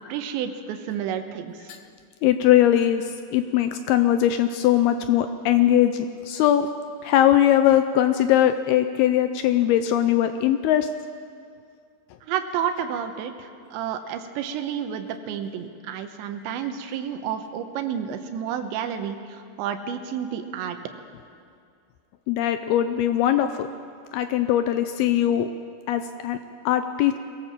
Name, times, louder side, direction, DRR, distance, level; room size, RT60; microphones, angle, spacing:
voice 1, 0.1-1.7 12.2-20.8, right 8 dB, 85° right, 7 dB, 3.4 m, -30 dB
voice 2, 2.2-3.0 3.3-6.7 7.0-10.9 22.3-23.7 24.1-25.5 25.9-26.4 26.7-27.2, left 11 dB, 80° left, 9 dB, 2.3 m, -20 dB
22.5 x 17.5 x 7.4 m, 2.2 s
omnidirectional pair, 5.1 m